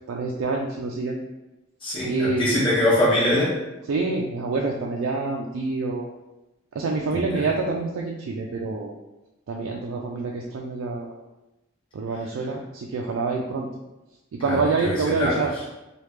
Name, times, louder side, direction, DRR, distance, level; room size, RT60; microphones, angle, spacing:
voice 1, 0.1-1.2 2.1-2.5 3.9-6.1 6.7-8.9 9.5-11.1 11.9-13.7 14.4-15.5, right 3 dB, 90° right, 0 dB, 0.4 m, -26 dB
voice 2, 1.8-3.5 7.3-7.4 14.4-15.3, left 1 dB, 25° left, -9 dB, 1.0 m, -23 dB
3.2 x 2.4 x 3.1 m, 0.99 s
head